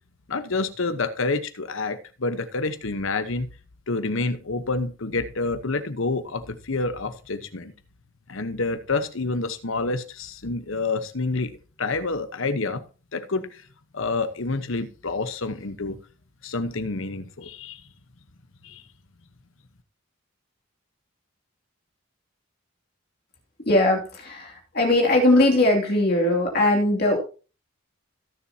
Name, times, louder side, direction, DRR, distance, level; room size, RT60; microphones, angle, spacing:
voice 1, 0.3-3.5 3.9-7.7 8.3-11.5 11.8-12.8 13.1-13.6 13.9-16.0 16.4-17.8 18.6-18.8, left 3 dB, 70° left, 1.0 m, -28 dB
voice 2, 23.7-27.2, left 1 dB, 45° left, 2.6 m, -20 dB
17.0 x 7.1 x 2.8 m
head